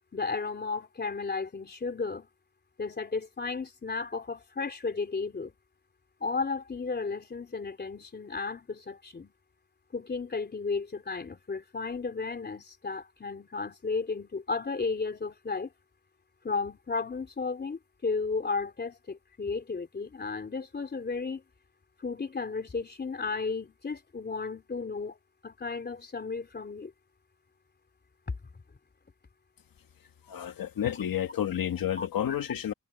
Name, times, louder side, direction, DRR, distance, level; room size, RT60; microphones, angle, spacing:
voice 1, 0.1-2.3 2.8-5.5 6.2-9.3 9.9-15.7 16.4-21.4 22.0-25.2 25.4-26.9 32.0-32.4, left 4 dB, 30° left, 3.5 m, -34 dB
voice 2, 30.3-32.7, left 10 dB, 80° left, 1.7 m, -30 dB
wide cardioid pair, 175°, 34 cm